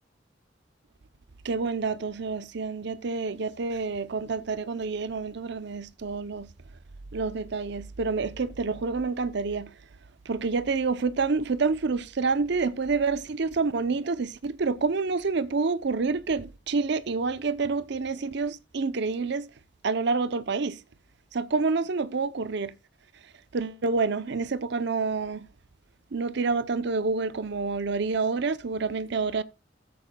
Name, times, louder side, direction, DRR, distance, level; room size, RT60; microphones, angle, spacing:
voice 1, 1.4-6.5 7.1-9.7 10.3-19.5 19.8-20.8 21.3-22.7 23.5-25.5 26.1-29.4, right 4 dB, 65° right, 0.6 m, -28 dB
16.0 x 7.8 x 2.2 m
head